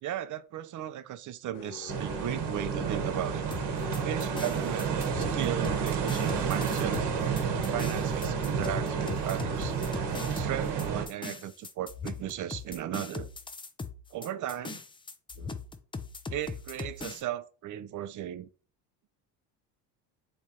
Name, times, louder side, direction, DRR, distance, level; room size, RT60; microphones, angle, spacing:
voice 1, 0.0-3.6 4.0-7.0 7.7-9.8 10.3-13.3 14.1-14.8 15.4-15.6 16.3-18.5, right 12 dB, 40° right, 0.5 m, -36 dB
sound 1, 1.5-10.4, left 11 dB, 80° left, 0.6 m, -43 dB
sound 2, 1.9-11.1, right 7 dB, 55° right, 1.1 m, -30 dB
sound 3, 3.5-17.2, left 4 dB, 10° left, 0.4 m, -40 dB
3.5 x 3.2 x 4.2 m
hypercardioid pair, 65°, 48 cm